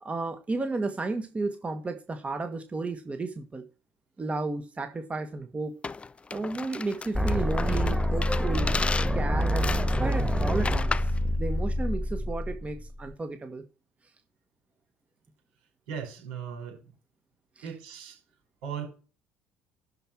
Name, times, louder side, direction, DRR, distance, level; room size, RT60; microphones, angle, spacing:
voice 1, 0.0-3.6 4.2-5.8 6.3-8.7 9.1-11.1 11.4-13.6, right 3 dB, 25° right, 8 dB, 1.4 m, -33 dB
sound 1, 5.8-11.2, left 4 dB, 20° left, 0.4 m, -35 dB
sound 2, 7.1-13.1, equal, ahead, 1.6 m, -27 dB
voice 2, 15.9-16.9 17.6-18.2 18.6-18.9, right 7 dB, 75° right, 2 dB, 5.6 m, -37 dB
12.5 x 4.6 x 6.0 m, 0.35 s
hypercardioid pair, 60°, 5 cm